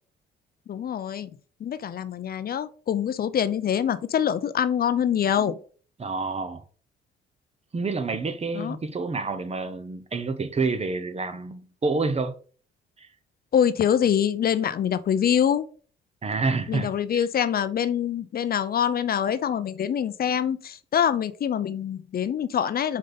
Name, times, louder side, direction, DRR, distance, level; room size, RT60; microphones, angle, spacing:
voice 1, 0.7-1.3 1.6-5.6 8.5-8.8 13.5-15.6 16.7-23.0, left 9 dB, 50° left, 0.5 m, -25 dB
voice 2, 6.0-6.6 7.7-12.4 13.0-13.1 16.2-17.2, right 3 dB, 30° right, 0.9 m, -28 dB
5.4 x 5.0 x 3.9 m
cardioid pair, 90°, 20 cm